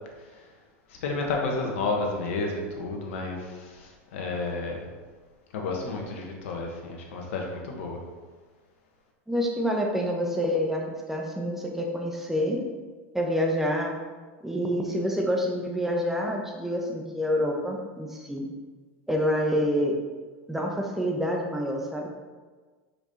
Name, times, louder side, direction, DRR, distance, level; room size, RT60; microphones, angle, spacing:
voice 1, 1.0-4.9 5.5-8.0, left 3 dB, 70° left, 1 dB, 1.4 m, -31 dB
voice 2, 9.3-12.6 13.1-14.0 14.4-18.5 19.1-19.9 20.5-22.1, equal, 5° right, 0 dB, 1.1 m, -27 dB
5.3 x 4.8 x 4.2 m, 1.4 s
hypercardioid pair, 100°, 7 cm